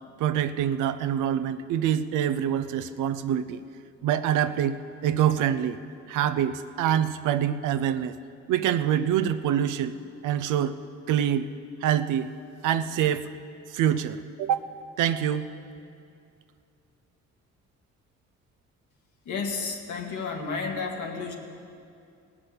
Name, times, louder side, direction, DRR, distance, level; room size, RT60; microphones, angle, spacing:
voice 1, 0.2-3.6 4.0-5.8 6.1-8.2 8.5-9.9 10.2-10.8 11.1-11.5 11.8-12.3 12.6-13.3 13.7-15.5, right 10 dB, 85° right, 11 dB, 0.6 m, -25 dB
voice 2, 19.3-21.3, left 4 dB, 75° left, 2 dB, 1.9 m, -31 dB
18.0 x 6.1 x 8.0 m, 2.4 s
cardioid pair, 90°, 30 cm